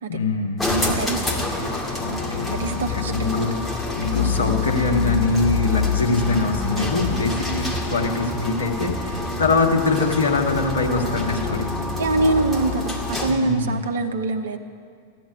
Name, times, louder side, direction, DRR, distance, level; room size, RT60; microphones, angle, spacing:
voice 1, 0.1-0.7 1.9-11.7 13.3-13.9, left 3 dB, 65° left, 1 dB, 1.8 m, -23 dB
sound 1, 0.6-13.5, left 2 dB, 10° left, 2.1 m, -29 dB
voice 2, 0.6-1.7 2.5-3.5 12.0-14.6, right 3 dB, 65° right, 7 dB, 1.0 m, -25 dB
sound 2, 2.1-12.7, left 6 dB, 35° left, 2.6 m, -29 dB
14.5 x 9.4 x 9.6 m, 2.2 s
figure-of-eight pair, 90°, 0 cm